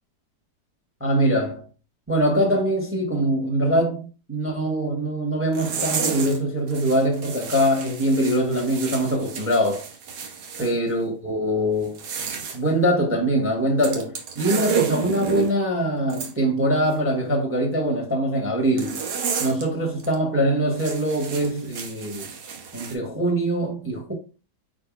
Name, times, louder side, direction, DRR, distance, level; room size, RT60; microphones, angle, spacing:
voice 1, 1.0-1.6 2.1-9.8 10.6-12.0 12.5-19.0 19.4-22.3 22.7-24.1, right 1 dB, 10° right, 0.8 m, -23 dB
sound 1, 5.5-6.4 6.7-10.7 11.8-12.6 13.8-15.5 16.1-16.3 18.8-19.7 20.0-20.2 20.7-22.9, right 7 dB, 90° right, 1.6 m, -31 dB
5.1 x 4.3 x 2.4 m
omnidirectional pair, 1.8 m